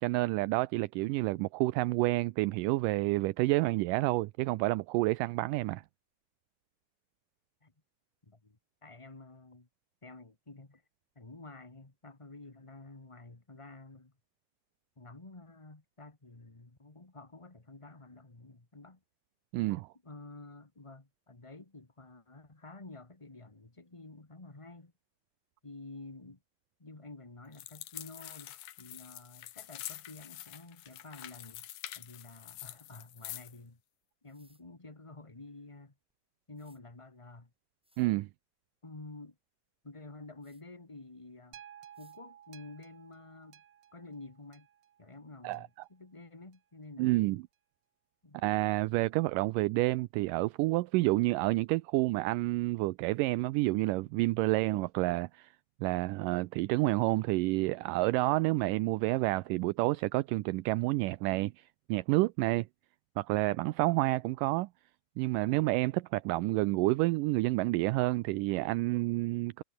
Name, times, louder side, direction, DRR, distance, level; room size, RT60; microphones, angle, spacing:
voice 1, 0.0-5.8 19.5-19.9 38.0-38.3 45.4-45.6 47.0-47.4 48.3-55.5 55.8-61.6 61.9-62.7 63.2-64.7 65.2-69.6, right 20 dB, 80° right, 2.1 m, -29 dB
voice 2, 8.2-9.7 10.0-10.8 11.1-14.1 15.0-19.0 20.0-24.9 25.6-26.4 26.8-31.7 31.9-33.8 34.2-35.9 36.5-37.5 38.8-39.4 39.8-41.6 42.0-43.6 43.9-44.7 45.0-47.3 48.2-48.4, left 2 dB, 20° left, 0.7 m, -50 dB
sound 1, 27.5-33.6, left 14 dB, 90° left, 3.0 m, -46 dB
sound 2, 29.7-30.0 30.8-31.1 33.2-33.4 34.2-34.6 36.1-36.2 36.5-36.8 37.4-37.5 37.8-38.1 40.4-40.6 41.9-42.2, equal, ahead, 5.5 m, -67 dB
sound 3, 41.5-45.9 46.5-46.6, right 10 dB, 60° right, 2.8 m, -56 dB
omnidirectional pair, 4.0 m